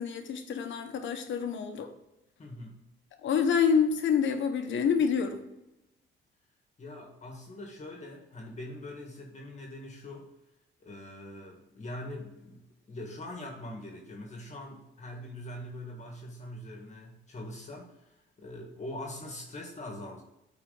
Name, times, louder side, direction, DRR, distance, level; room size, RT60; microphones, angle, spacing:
voice 1, 0.0-1.9 3.2-5.4, left 6 dB, 70° left, 6 dB, 1.2 m, -27 dB
voice 2, 2.4-2.8 6.8-10.3 10.8-20.2, left 1 dB, 35° left, 1 dB, 1.8 m, -43 dB
8.4 x 4.3 x 3.9 m, 0.91 s
cardioid pair, 90°, 20 cm